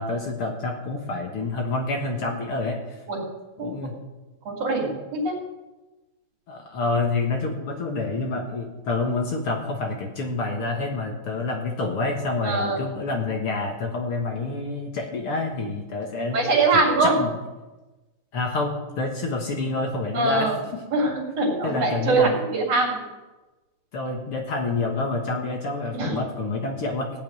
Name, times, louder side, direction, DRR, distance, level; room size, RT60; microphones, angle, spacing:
voice 1, 0.0-3.0 3.6-3.9 6.5-16.4 16.7-17.3 18.3-20.8 21.6-22.3 23.9-27.1, left 3 dB, 55° left, 2 dB, 1.7 m, -28 dB
voice 2, 4.5-5.4 12.4-12.8 16.3-17.2 20.1-20.6 20.9-23.0 25.9-26.2, right 3 dB, 45° right, -2 dB, 3.8 m, -23 dB
16.5 x 5.6 x 9.4 m, 1.1 s
omnidirectional pair, 4.2 m